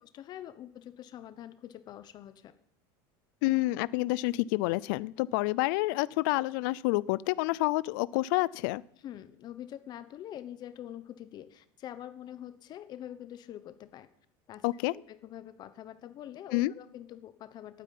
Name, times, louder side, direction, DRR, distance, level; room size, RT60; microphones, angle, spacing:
voice 1, 0.0-2.5 8.9-14.1 14.5-17.8, left 11 dB, 40° left, 13 dB, 0.9 m, -45 dB
voice 2, 3.4-8.8 14.6-14.9 16.5-16.7, left 20 dB, 75° left, 20 dB, 0.5 m, -28 dB
12.0 x 9.4 x 9.5 m, 0.70 s
supercardioid pair, 140°, 11 cm